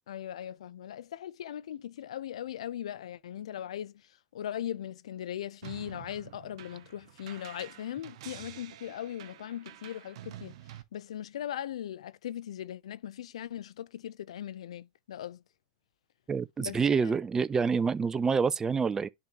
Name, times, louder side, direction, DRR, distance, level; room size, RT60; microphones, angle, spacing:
voice 1, 0.1-4.0 4.3-10.5 10.9-15.4 16.6-17.1, left 11 dB, 80° left, 0.4 m, -39 dB
sound 1, 5.6-10.8, right 13 dB, 70° right, 0.7 m, -48 dB
voice 2, 16.3-19.1, right 5 dB, 15° right, 0.4 m, -27 dB
10.5 x 3.6 x 2.9 m
hypercardioid pair, 110°, 3 cm